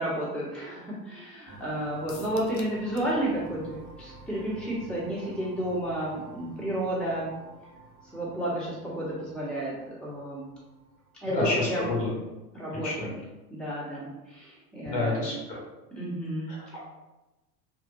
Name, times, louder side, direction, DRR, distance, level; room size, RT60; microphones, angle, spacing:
voice 1, 0.0-7.3 8.1-10.5 11.2-11.9 12.5-13.1 13.5-15.2 15.9-16.5, right 1 dB, ahead, -8 dB, 1.1 m, -32 dB
sound 1, 1.5-12.0, right 3 dB, 30° right, 1.1 m, -50 dB
sound 2, 2.1-3.2 3.5-3.6 3.9-4.0, left 7 dB, 55° left, 0.5 m, -48 dB
voice 2, 11.2-12.1 12.8-13.1 14.8-15.6 16.5-16.8, left 2 dB, 90° left, -4 dB, 1.2 m, -29 dB
2.7 x 2.1 x 2.6 m, 1.0 s
hypercardioid pair, 85°, 49 cm